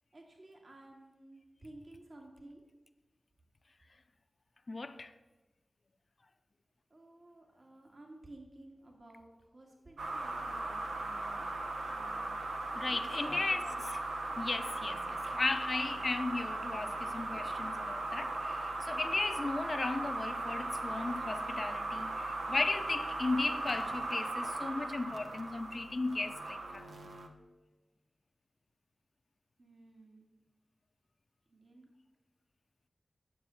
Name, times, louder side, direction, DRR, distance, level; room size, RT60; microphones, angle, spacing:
voice 1, 0.1-2.6 6.9-11.5 11.9-12.4 12.9-13.8 29.6-30.3 31.5-31.9, right 1 dB, 60° right, 2.4 m, -54 dB
voice 2, 4.7-5.1 12.7-13.6 14.4-26.9, left 3 dB, 50° left, 0.7 m, -36 dB
sound 1, 10.0-27.3, right 2 dB, 85° right, 1.1 m, -38 dB
9.3 x 7.6 x 7.1 m
cardioid pair, 40°, 0 cm